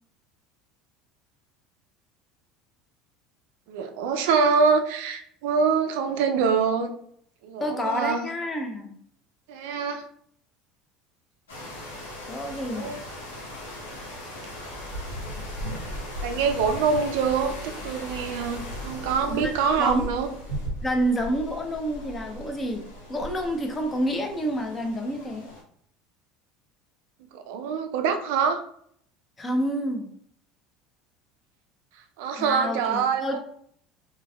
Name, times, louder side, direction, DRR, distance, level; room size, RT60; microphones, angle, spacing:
voice 1, 3.7-6.9 7.4-8.3 9.5-10.0 12.4-13.0 16.2-20.3 27.3-28.6 32.2-33.4, right 5 dB, 70° right, 6 dB, 0.4 m, -25 dB
voice 2, 7.6-9.0 12.3-12.9 19.3-20.1 20.8-22.8 23.1-25.5 29.4-30.1 32.4-33.4, equal, 25° left, 4 dB, 0.6 m, -28 dB
sound 1, 11.5-25.6, equal, 85° left, 0.9 m, -37 dB
3.3 x 2.2 x 2.2 m, 0.65 s
hypercardioid pair, 75°, 0 cm